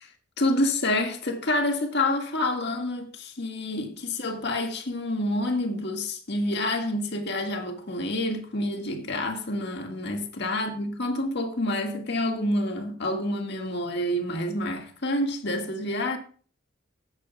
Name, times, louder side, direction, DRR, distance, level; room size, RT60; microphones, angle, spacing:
voice 1, 0.4-16.2, left 1 dB, 60° left, 1.8 m, -28 dB
16.0 x 9.0 x 2.3 m
head